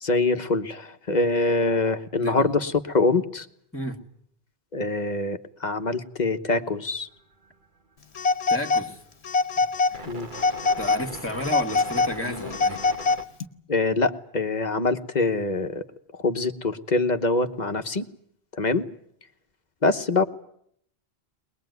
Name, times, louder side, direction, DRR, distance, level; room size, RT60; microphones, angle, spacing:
voice 1, 0.0-3.5 4.7-7.1 10.1-10.3 13.7-15.8 16.2-18.1 18.5-18.9 19.8-20.2, left 3 dB, 45° left, 8 dB, 1.3 m, -24 dB
voice 2, 2.2-2.6 3.7-4.0 8.5-9.0 9.6-9.7 9.9-10.1 10.8-13.1, equal, 10° left, 6 dB, 1.9 m, -32 dB
sound 1, 7.1-7.6 8.7-8.8 9.9-13.2, right 2 dB, 50° right, 1.7 m, -40 dB
Telephone, 8.1-8.9 9.2-10.0 10.3-11.0 11.4-13.4, left 4 dB, 80° left, 1.5 m, -24 dB
21.5 x 21.5 x 9.4 m, 0.69 s
omnidirectional pair, 1.1 m